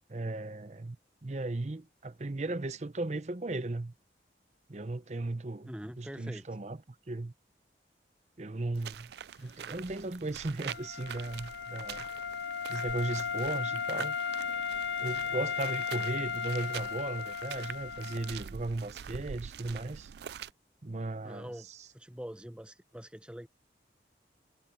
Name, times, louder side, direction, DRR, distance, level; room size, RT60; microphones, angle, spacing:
voice 1, 0.1-1.0 1.2-3.9 4.7-5.7 6.0-6.8 7.1-7.3 8.4-9.1 9.4-12.1 12.7-14.2 15.0-20.1 20.8-21.9, right 2 dB, 40° right, 0.7 m, -36 dB
voice 2, 5.6-6.5 21.2-21.7 21.9-23.5, equal, 5° right, 0.7 m, -44 dB
sound 1, 8.7-20.5, right 8 dB, 65° right, 0.4 m, -45 dB
Wind instrument woodwind instrument, 10.6-18.4, left 6 dB, 80° left, 0.6 m, -35 dB
head